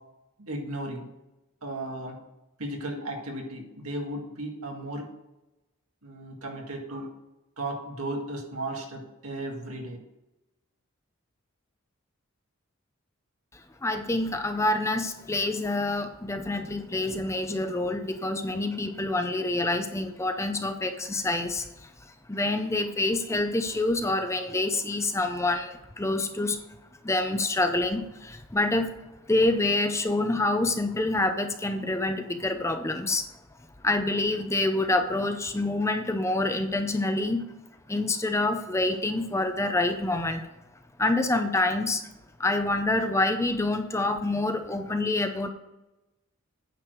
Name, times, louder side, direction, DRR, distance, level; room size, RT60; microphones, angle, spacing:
voice 1, 0.4-1.0 1.6-2.2 2.6-5.0 6.0-7.1 7.6-10.0, right 1 dB, 85° right, 1 dB, 2.0 m, -35 dB
voice 2, 13.8-21.9 22.3-26.6 27.0-28.9 29.3-33.2 33.8-37.5 37.9-40.5 41.0-42.0 42.4-45.5, left 2 dB, 15° left, 7 dB, 0.5 m, -27 dB
9.0 x 4.8 x 6.3 m, 0.98 s
head